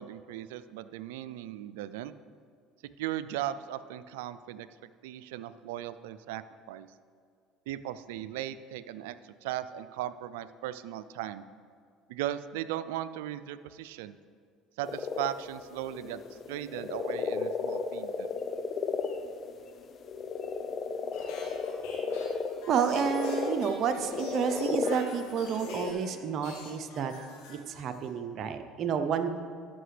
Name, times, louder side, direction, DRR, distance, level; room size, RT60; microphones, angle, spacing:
voice 1, 0.0-2.1 3.0-4.7 5.0-6.9 7.7-9.2 9.4-11.4 12.1-14.2 14.8-16.2 16.5-18.3, right 12 dB, 80° right, 14 dB, 0.3 m, -37 dB
sound 1, 14.8-25.9, left 5 dB, 45° left, 0.6 m, -34 dB
sound 2, 21.1-26.1 26.4-28.1, left 3 dB, 80° left, 2.1 m, -47 dB
voice 2, 22.7-27.1 27.5-29.3, right 7 dB, 55° right, 8 dB, 0.7 m, -30 dB
13.5 x 5.7 x 3.3 m, 2.2 s
hypercardioid pair, 75°, 0 cm